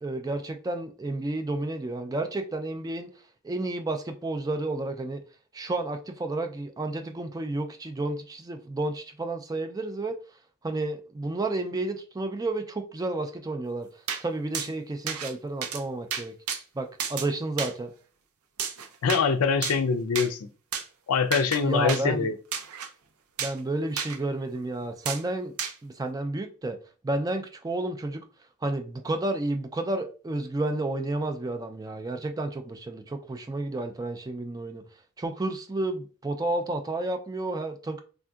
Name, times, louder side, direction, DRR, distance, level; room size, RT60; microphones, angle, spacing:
voice 1, 0.0-3.1 3.4-5.2 5.5-10.2 10.6-13.9 14.2-16.3 16.8-17.9 21.6-22.3 23.4-25.6 25.8-26.8 27.0-28.2 28.6-34.8 35.2-38.0, right 2 dB, 15° right, 0.3 m, -31 dB
sound 1, 14.1-14.2 14.5-14.7 15.1-15.3 15.6-15.8 16.1-16.6 17.0-17.3 17.6-17.7 18.6-19.2 19.6-19.8 20.2-20.3 20.7-20.8 21.3-21.6 21.9-22.0 22.5-22.9 23.4-23.6 24.0-24.2 25.1-25.2 25.6-25.7, right 7 dB, 80° right, 0.5 m, -31 dB
voice 2, 19.0-20.5 21.1-22.3, left 5 dB, 80° left, 0.4 m, -24 dB
3.6 x 2.6 x 2.3 m
head